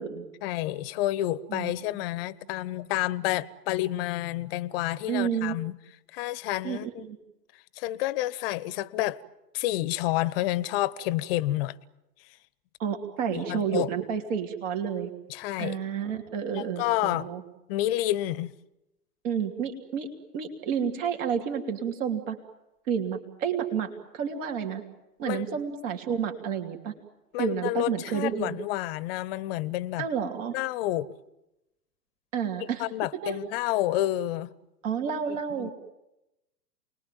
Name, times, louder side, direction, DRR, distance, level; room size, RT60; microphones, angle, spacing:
voice 1, 0.4-5.8 6.1-7.0 7.8-9.2 9.5-11.8 13.3-13.9 15.3-15.8 16.5-17.3 17.7-18.5 25.2-25.5 27.3-30.0 30.5-31.1 32.8-34.5 35.3-35.7, left 15 dB, 35° left, 0.9 m, -29 dB
voice 2, 5.1-5.5 6.6-7.2 12.8-15.1 15.6-17.4 19.2-20.1 20.3-22.4 22.9-24.8 25.2-26.9 27.4-28.6 30.0-30.5 32.3-32.8 33.2-33.4 34.8-35.7, right 7 dB, 50° right, 3.1 m, -30 dB
29.0 x 21.0 x 9.2 m
hypercardioid pair, 110°, 48 cm